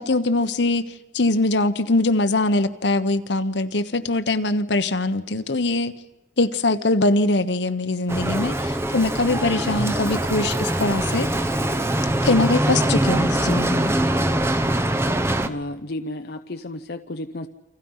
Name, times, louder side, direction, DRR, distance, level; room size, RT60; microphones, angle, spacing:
voice 1, 0.0-6.0 6.4-11.3 12.2-14.0, left 2 dB, 80° left, 10 dB, 1.2 m, -22 dB
Bicycle, 8.1-15.5, right 1 dB, 15° right, 1.0 m, -23 dB
voice 2, 15.4-17.5, left 1 dB, 60° left, 7 dB, 0.8 m, -32 dB
29.0 x 26.0 x 5.7 m, 0.97 s
head